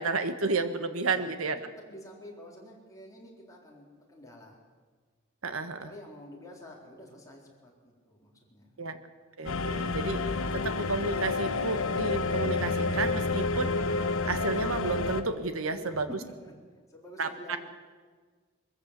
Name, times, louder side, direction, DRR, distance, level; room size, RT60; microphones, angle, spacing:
voice 1, 0.0-1.6 5.4-5.9 8.8-9.0 9.4-10.3 10.5-13.7 14.2-16.1 17.2-17.3, right 3 dB, 75° right, 9 dB, 1.5 m, -31 dB
voice 2, 1.0-4.6 5.8-8.8 15.7-16.2 16.4-16.5 16.9-17.6, equal, 15° left, -3 dB, 4.1 m, -48 dB
sound 1, 9.5-15.2, left 3 dB, 75° left, 1.2 m, -29 dB
22.0 x 14.5 x 8.3 m, 1.5 s
head